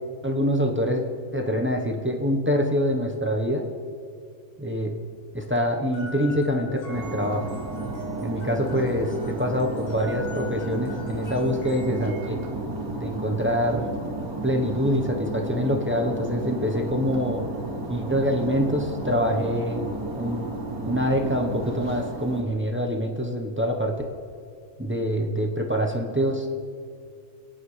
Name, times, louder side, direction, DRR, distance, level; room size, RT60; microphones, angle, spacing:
voice 1, 0.2-1.0 1.3-3.7 4.6-4.9 5.3-7.5 8.2-12.4 13.0-13.9 14.4-17.4 17.9-19.9 20.2-20.5 20.9-23.9 24.8-26.5, equal, 10° right, 1 dB, 0.8 m, -25 dB
sound 1, 5.9-12.3, equal, 90° left, 2.8 m, -42 dB
sound 2, 6.9-22.4, right 2 dB, 75° right, 2.2 m, -33 dB
23.5 x 9.5 x 3.3 m, 2.3 s
omnidirectional pair, 1.5 m